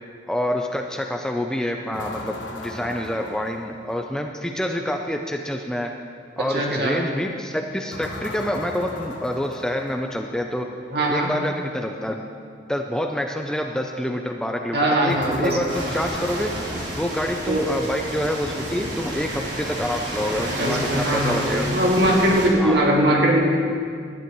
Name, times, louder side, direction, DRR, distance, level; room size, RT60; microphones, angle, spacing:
voice 1, 0.3-5.9 6.4-10.7 11.1-12.2 12.7-16.5 17.0-21.7 22.6-22.8, left 1 dB, 5° left, 3 dB, 0.5 m, -27 dB
sound 1, 1.9-4.3 7.9-10.4 15.1-17.7, left 2 dB, 85° left, 1.3 m, -37 dB
voice 2, 6.5-7.0 10.9-11.3 14.7-15.6 17.5-17.6 20.6-23.4, right 1 dB, 60° right, -2 dB, 2.3 m, -20 dB
sound 2, 15.7-22.5, right 1 dB, 80° right, 3.2 m, -30 dB
18.5 x 12.0 x 3.1 m, 2.2 s
head